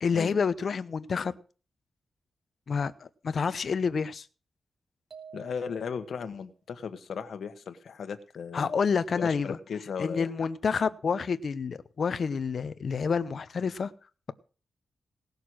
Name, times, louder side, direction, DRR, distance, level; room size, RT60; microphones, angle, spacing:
voice 1, 0.0-1.3 2.7-4.3 8.5-9.6 10.0-13.9, left 5 dB, 60° left, 14 dB, 0.8 m, -28 dB
sound 1, 5.1-6.3, right 6 dB, 60° right, 2.7 m, -49 dB
voice 2, 5.3-8.7 9.1-10.3, left 6 dB, 80° left, 9 dB, 1.4 m, -36 dB
18.0 x 6.7 x 6.3 m, 0.38 s
wide cardioid pair, 105°, 0 cm